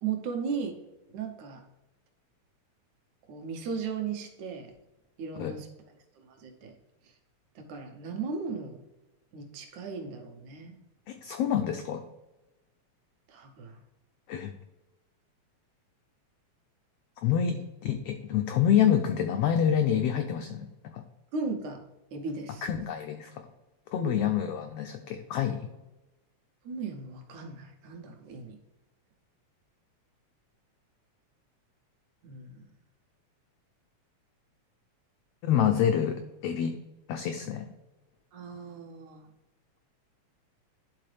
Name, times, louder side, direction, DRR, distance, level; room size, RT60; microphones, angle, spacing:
voice 1, 0.0-0.8 1.1-1.6 3.3-4.7 5.2-5.7 6.2-6.7 7.6-8.8 9.3-10.8 13.3-13.8 17.4-17.6 21.3-21.8 22.1-22.7 24.0-24.2 26.7-28.6 32.2-32.6 38.3-39.3, right 5 dB, 80° right, 3 dB, 2.3 m, -36 dB
voice 2, 11.1-12.0 14.3-14.5 17.2-17.6 17.8-20.7 20.9-21.0 22.6-23.4 23.9-25.7 35.4-36.8 37.1-37.7, left 9 dB, 90° left, 6 dB, 1.4 m, -27 dB
11.5 x 3.9 x 3.3 m, 1.0 s
omnidirectional pair, 3.3 m